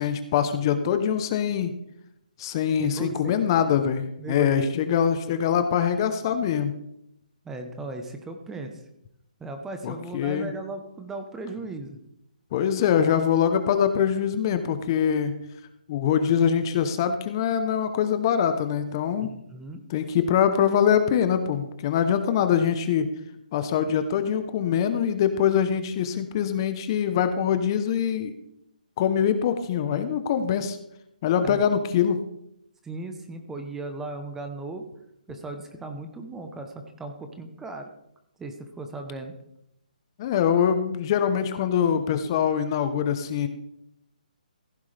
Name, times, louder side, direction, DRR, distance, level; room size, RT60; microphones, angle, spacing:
voice 1, 0.0-1.7 2.4-6.7 9.8-10.5 12.5-15.4 15.9-19.3 19.9-23.1 23.5-28.3 29.0-30.8 31.2-32.2 40.2-43.5, left 8 dB, 30° left, 9 dB, 0.8 m, -23 dB
voice 2, 2.8-3.4 4.2-4.5 7.4-8.7 9.4-12.0 19.2-19.8 31.4-31.6 32.8-34.8 35.3-37.9 38.4-39.3, right 2 dB, 10° right, 6 dB, 0.9 m, -37 dB
15.5 x 9.6 x 3.4 m, 0.78 s
hypercardioid pair, 160°, 5 cm